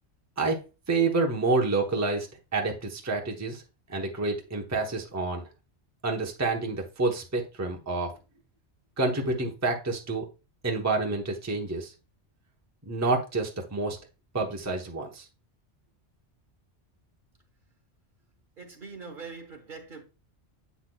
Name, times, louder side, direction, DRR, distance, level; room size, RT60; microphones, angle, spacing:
voice 1, 0.9-2.3 2.5-3.6 3.9-5.4 6.0-8.1 9.0-10.2 10.6-11.9 12.9-14.0 14.3-15.2, right 3 dB, 15° right, 0.9 m, -28 dB
voice 2, 18.6-20.0, right 4 dB, 50° right, 1.1 m, -42 dB
8.2 x 5.8 x 2.2 m
omnidirectional pair, 1.2 m